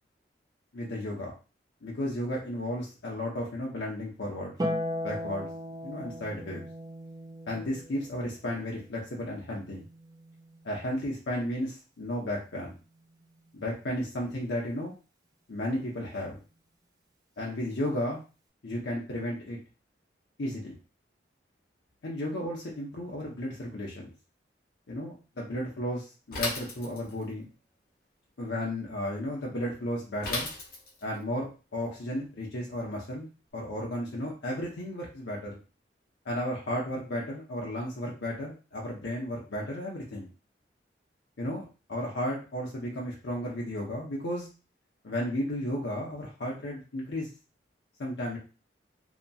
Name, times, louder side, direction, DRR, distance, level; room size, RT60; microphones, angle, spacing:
voice 1, 0.7-1.3 1.8-4.5 5.0-5.5 5.8-6.7 7.5-9.8 10.6-12.8 13.5-14.9 15.5-16.4 17.4-18.2 18.6-19.6 20.4-20.8 22.0-24.1 24.9-27.5 28.4-30.5 31.0-33.3 33.5-35.6 36.2-40.3 41.4-41.6 41.9-44.5 45.0-47.3 48.0-48.4, left 1 dB, 80° left, -3 dB, 0.7 m, -33 dB
Harp, 4.6-11.1 12.7-13.7, left 1 dB, 20° right, 0.5 m, -38 dB
Bicycle / Mechanisms, 26.3-27.3 30.2-31.1, left 3 dB, 55° left, 0.9 m, -34 dB
2.8 x 2.7 x 2.3 m, 0.33 s
head